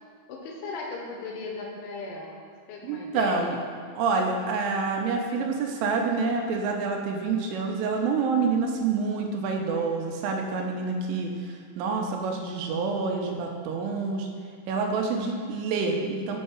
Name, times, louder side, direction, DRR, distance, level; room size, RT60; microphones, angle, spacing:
voice 1, 0.3-2.4 2.7-3.6 15.3-16.1, left 3 dB, 85° left, 0 dB, 3.1 m, -38 dB
voice 2, 2.8-3.6 4.0-11.3 11.8-14.3 14.7-16.4, right 4 dB, 85° right, 2 dB, 3.2 m, -27 dB
7.3 x 5.5 x 4.4 m, 2.2 s
omnidirectional pair, 5.7 m